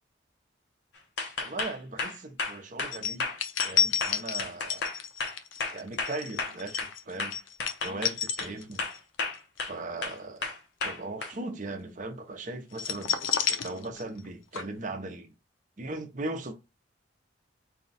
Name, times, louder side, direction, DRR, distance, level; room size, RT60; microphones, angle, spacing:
sound 1, 1.2-6.9 7.2-8.5 8.8-9.8 10.0-11.3, left 3 dB, 60° left, 0.8 m, -33 dB
voice 1, 1.4-3.3 3.6-4.8 5.7-7.3 7.8-8.8 9.6-10.5 10.8-13.2 13.5-15.3 15.8-16.5, right 2 dB, 40° right, 0.7 m, -38 dB
sound 2, 2.9-9.0 9.3-9.6 12.7-14.3 14.5-14.6, left 7 dB, 85° left, 0.5 m, -30 dB
4.1 x 2.3 x 4.0 m
head